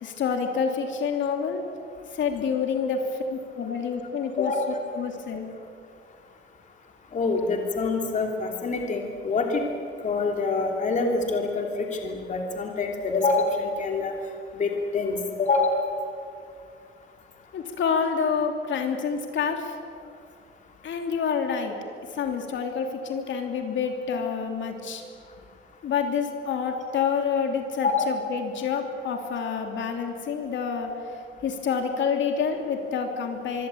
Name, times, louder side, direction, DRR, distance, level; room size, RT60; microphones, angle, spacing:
voice 1, 0.0-1.6 2.1-3.0 3.3-4.5 5.0-5.5 17.5-19.7 20.8-21.8 22.1-25.0 25.8-30.9 31.4-33.7, left 6 dB, 65° left, 4 dB, 3.2 m, -28 dB
voice 2, 7.1-9.6 10.0-14.1 14.6-15.8 24.1-24.2 27.8-28.1 30.9-31.0, left 3 dB, 35° left, 2 dB, 3.0 m, -26 dB
25.0 x 24.5 x 8.8 m, 2.4 s
cardioid pair, 170°, 21 cm